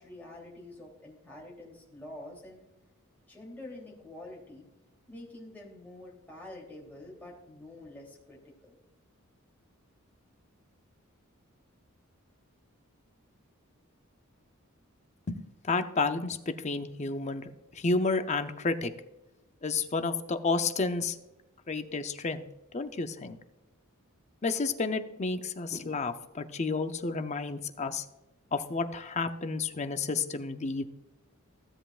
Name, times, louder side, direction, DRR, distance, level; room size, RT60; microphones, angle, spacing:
voice 1, 0.0-2.6 3.3-4.7 5.1-8.4 8.6-8.8, left 1 dB, 10° left, -3 dB, 3.0 m, -47 dB
voice 2, 15.7-18.9 19.6-21.2 21.7-22.4 22.7-23.4 24.4-28.0 28.5-30.8, left 3 dB, 30° left, 9 dB, 0.6 m, -31 dB
15.5 x 7.8 x 2.4 m, 1.0 s
head